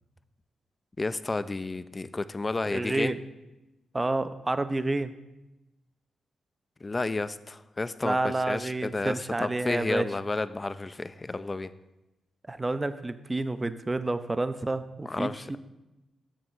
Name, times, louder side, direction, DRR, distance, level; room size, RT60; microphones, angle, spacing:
voice 1, 1.0-3.1 6.8-11.7 15.1-15.6, left 3 dB, 30° left, 14 dB, 0.4 m, -31 dB
voice 2, 2.7-3.2 3.9-5.1 8.0-10.1 12.5-15.6, right 2 dB, 25° right, 12 dB, 0.5 m, -29 dB
6.5 x 6.2 x 3.9 m, 0.97 s
hypercardioid pair, 45°, 0 cm